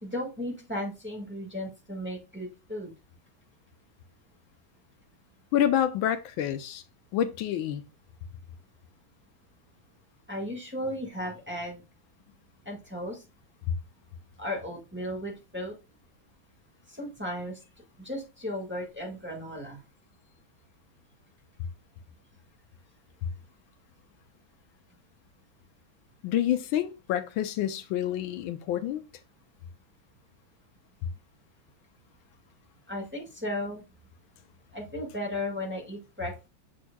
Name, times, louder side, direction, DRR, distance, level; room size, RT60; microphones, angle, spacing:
voice 1, 0.0-2.9 10.3-11.8 12.7-13.2 14.4-15.7 16.9-17.6 18.0-19.8 32.9-33.8 34.7-36.5, left 1 dB, 5° right, 1.8 m, -35 dB
voice 2, 5.5-6.8 7.1-7.8 26.2-29.0, left 11 dB, 80° left, 1.4 m, -28 dB
7.1 x 6.2 x 2.3 m
omnidirectional pair, 2.2 m